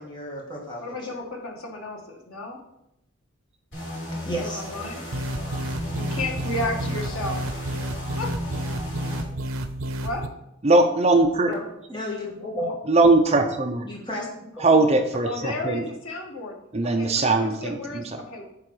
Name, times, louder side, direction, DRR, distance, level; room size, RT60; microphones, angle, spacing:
voice 1, 0.0-1.1 4.1-4.6 11.5-11.6 11.9-12.7 13.8-14.7, equal, 20° left, -3 dB, 1.8 m, -33 dB
voice 2, 0.8-2.6 4.1-4.2 4.5-5.0 5.9-7.4 8.2-8.3 10.0-10.3 14.7-16.5 16.9-18.4, left 2 dB, 85° left, 1 dB, 1.5 m, -33 dB
sound 1, 3.7-9.2, equal, 60° left, 3.0 m, -34 dB
sound 2, 5.1-10.3, right 1 dB, 85° right, 0.7 m, -31 dB
voice 3, 10.6-11.5 12.9-13.9 14.6-15.8 16.7-18.2, right 2 dB, 30° right, 5 dB, 0.6 m, -20 dB
8.6 x 3.8 x 4.8 m, 0.81 s
head